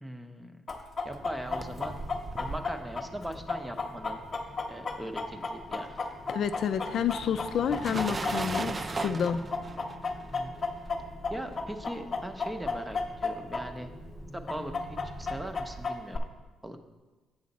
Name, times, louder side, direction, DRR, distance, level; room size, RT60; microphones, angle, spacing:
voice 1, 0.0-0.6 1.0-2.0 2.4-4.2 4.7-5.9 10.3-10.5 11.3-13.9 14.3-14.7 15.0-16.3 16.6-16.8, equal, 10° right, 7 dB, 0.7 m, -39 dB
Chicken rooster, 0.7-9.0 9.3-13.6 13.9-14.0 14.5-16.2, left 4 dB, 40° left, 1.0 m, -33 dB
sound 1, 1.1-15.4, left 1 dB, 15° left, 1.0 m, -48 dB
sound 2, 1.2-4.9 5.2-15.9, right 3 dB, 30° right, 0.3 m, -40 dB
voice 2, 6.3-9.4, left 8 dB, 65° left, 10 dB, 0.4 m, -29 dB
7.8 x 6.3 x 4.1 m, 1.3 s
cardioid pair, 90°, 0 cm